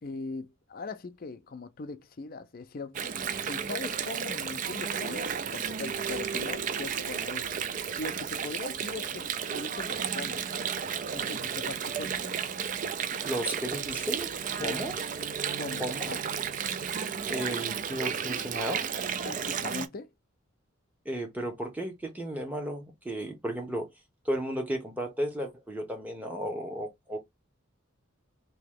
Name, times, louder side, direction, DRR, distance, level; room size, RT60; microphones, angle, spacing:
voice 1, 0.0-3.0 3.4-7.6 8.0-10.5 11.1-12.2 14.6-15.0 15.6-16.2 19.2-20.1, left 3 dB, 45° left, 0.4 m, -40 dB
Water, 2.9-19.9, right 7 dB, 40° right, 0.3 m, -33 dB
voice 2, 13.2-14.3 14.6-14.9 15.8-16.1 17.3-18.8 21.0-23.9 24.2-27.2, right 1 dB, 10° right, 0.9 m, -34 dB
2.9 x 2.8 x 3.5 m
head